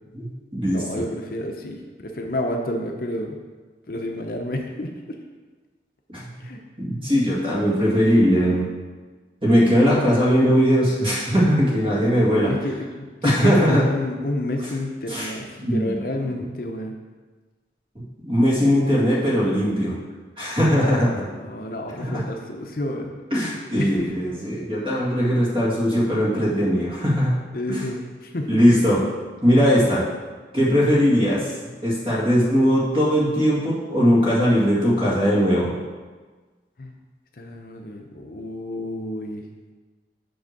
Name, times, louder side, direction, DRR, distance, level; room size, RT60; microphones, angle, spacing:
voice 1, 0.1-1.0 6.1-6.2 6.8-8.6 9.4-12.5 13.2-13.8 15.1-15.3 15.6-15.9 18.2-20.0 20.4-21.2 22.0-22.2 23.3-27.4 27.7-27.8 28.5-29.0 29.4-30.0 30.5-31.4 31.8-35.7, equal, 30° right, -6 dB, 2.1 m, -19 dB
voice 2, 0.7-3.4 3.9-5.2 6.4-6.6 12.3-16.9 21.4-23.1 23.8-24.1 27.5-28.7 36.8-37.0 37.4-39.4, left 1 dB, 50° left, 2 dB, 0.7 m, -30 dB
7.8 x 3.5 x 6.6 m, 1.4 s
head